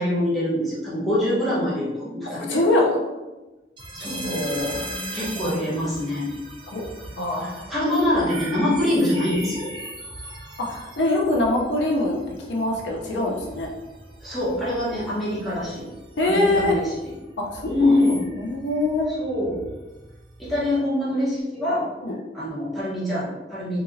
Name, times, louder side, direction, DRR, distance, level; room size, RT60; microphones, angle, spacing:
voice 1, 0.0-2.6 3.9-4.9 5.1-6.3 7.3-9.7 14.2-15.9 16.2-17.1 17.6-18.3 19.2-19.6 20.4-21.9 22.3-23.8, left 1 dB, ahead, -9 dB, 0.9 m, -24 dB
voice 2, 2.2-3.0 4.9-5.3 6.7-6.8 7.2-7.7 10.6-12.2 12.5-13.7 16.2-16.7 17.4-19.1 22.0-22.2, left 2 dB, 90° left, -1 dB, 0.6 m, -24 dB
sound 1, 3.8-20.8, right 1 dB, 25° right, 0.5 m, -40 dB
2.9 x 2.7 x 2.5 m, 1.1 s
head